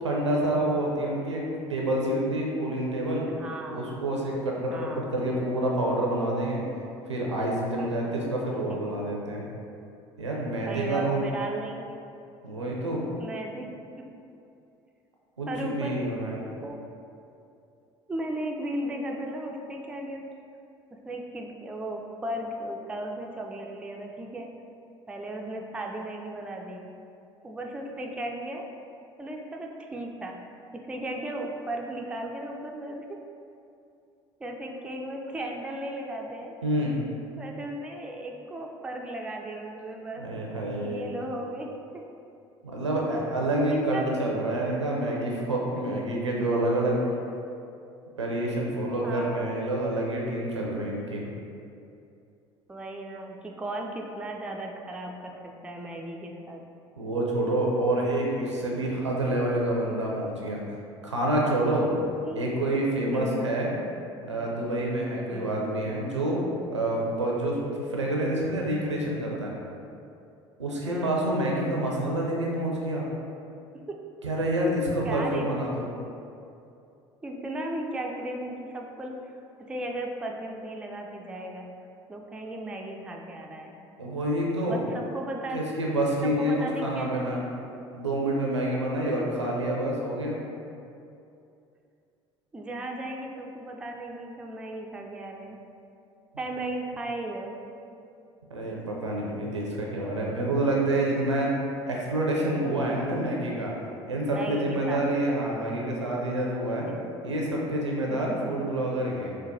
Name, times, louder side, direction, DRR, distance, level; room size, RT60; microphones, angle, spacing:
voice 1, 0.0-3.3 3.7-6.6 7.1-9.4 10.2-11.3 12.4-13.0 15.4-16.4 36.6-37.0 40.2-41.1 42.6-47.0 48.2-51.2 57.0-60.6 61.0-61.9 62.3-63.7 64.2-66.4 66.7-69.5 70.6-73.0 74.2-75.9 84.0-84.8 85.5-87.4 87.9-90.4 98.5-101.5 101.9-103.7 104.1-106.9 107.2-109.3, right 1 dB, 85° right, -2 dB, 0.5 m, -28 dB
voice 2, 3.3-3.9 4.7-5.1 7.8-8.2 8.7-8.8 10.7-12.1 13.2-13.7 14.0-14.1 15.5-16.0 16.6-16.9 18.1-20.2 20.9-24.5 25.1-26.9 27.4-28.6 29.2-30.3 30.7-33.2 34.4-36.5 37.4-40.3 40.8-42.0 43.7-44.1 49.0-49.4 52.7-56.6 62.2-62.4 63.1-63.5 65.3-65.5 70.8-71.2 73.9-74.0 75.0-75.5 77.2-79.3 79.7-81.7 82.1-83.8 84.7-85.6 86.2-87.3 88.7-88.8 92.5-95.6 96.4-97.6 104.3-105.3 106.9-107.1 108.1-108.4, right 1 dB, 5° right, 1 dB, 0.3 m, -36 dB
4.4 x 2.1 x 2.6 m, 2.6 s
figure-of-eight pair, 60°, 15 cm